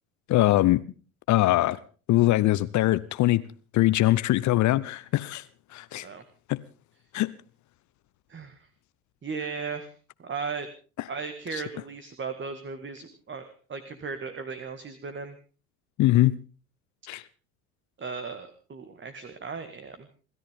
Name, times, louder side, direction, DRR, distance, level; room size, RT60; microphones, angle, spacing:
voice 1, 0.3-0.8 1.3-1.8 2.1-3.4 3.7-5.4 5.7-6.1 6.5-6.6 7.1-7.3 11.5-11.6 16.0-16.4 17.1-17.2, left 16 dB, 45° left, 0.8 m, -22 dB
voice 2, 8.3-8.7 9.2-9.9 10.2-10.7 11.1-15.4 18.0-20.1, right 5 dB, 25° right, 1.9 m, -36 dB
28.0 x 13.5 x 3.7 m
hypercardioid pair, 70°, 42 cm